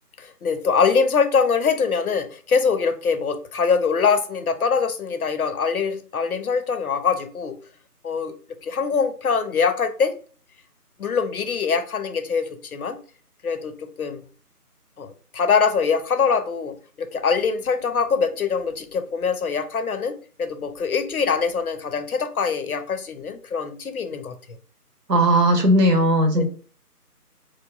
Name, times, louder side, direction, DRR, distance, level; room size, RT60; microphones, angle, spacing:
voice 1, 0.2-7.6 8.0-8.3 8.6-10.1 11.0-13.0 13.4-14.2 15.0-24.3 26.4-26.5, left 5 dB, 65° left, 8 dB, 0.5 m, -23 dB
voice 2, 25.1-26.4, right 1 dB, 85° right, 3 dB, 1.0 m, -17 dB
3.0 x 2.2 x 2.2 m, 0.40 s
figure-of-eight pair, 160°, 47 cm